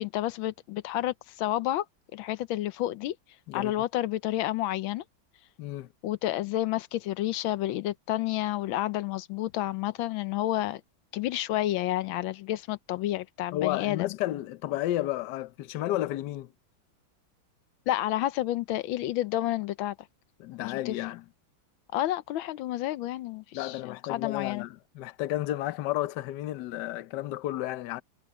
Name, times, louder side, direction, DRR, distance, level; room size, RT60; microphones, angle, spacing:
voice 1, 0.0-1.8 2.1-3.1 3.5-5.0 6.0-10.8 11.1-14.2 17.9-19.9 20.6-21.0 21.9-24.7, left 14 dB, 90° left, 1.5 m, -30 dB
voice 2, 5.6-5.9 13.5-16.5 20.4-21.2 23.5-28.0, left 14 dB, 70° left, 1.2 m, -32 dB
omnidirectional pair, 2.1 m